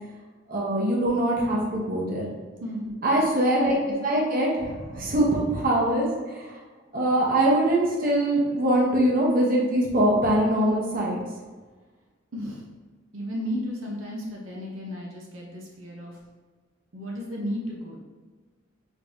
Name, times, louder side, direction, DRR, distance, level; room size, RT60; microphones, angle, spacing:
voice 1, 0.5-2.2 3.0-6.1 6.3-6.4 6.9-11.2, right 1 dB, 45° right, -4 dB, 1.0 m, -23 dB
voice 2, 2.6-3.0 12.3-12.7 13.1-16.2 16.9-18.0, equal, 85° right, -2 dB, 0.8 m, -34 dB
5.2 x 3.2 x 2.6 m, 1.4 s
head